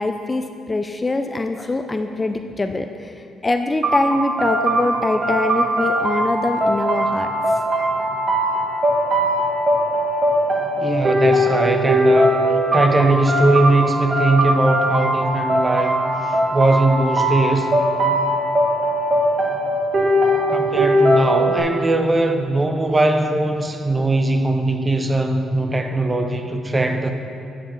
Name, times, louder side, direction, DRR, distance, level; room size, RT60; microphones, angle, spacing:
voice 1, 0.0-7.3, left 2 dB, 25° left, 6 dB, 0.4 m, -23 dB
sound 1, 3.8-21.6, equal, 40° right, 1.7 m, -20 dB
voice 2, 10.8-12.3 12.7-16.0 16.5-17.7 20.5-27.1, right 2 dB, 20° right, 6 dB, 0.7 m, -19 dB
8.5 x 7.4 x 3.8 m, 2.7 s
cardioid pair, 90°, 0 cm